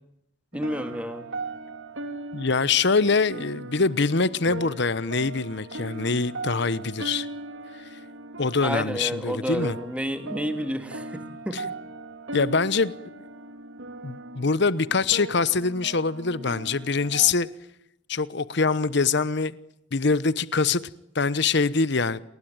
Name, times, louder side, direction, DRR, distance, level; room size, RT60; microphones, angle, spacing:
voice 1, 0.5-1.3 8.6-11.6, equal, 5° right, 2.8 m, -30 dB
sound 1, 0.5-17.3, right 2 dB, 80° right, 3.1 m, -39 dB
voice 2, 2.3-7.3 7.9-8.0 8.4-9.8 11.5-11.6 12.3-12.9 14.0-17.5 18.1-19.6 19.9-20.8 21.1-22.2, left 4 dB, 60° left, 1.0 m, -24 dB
29.5 x 20.5 x 9.1 m
head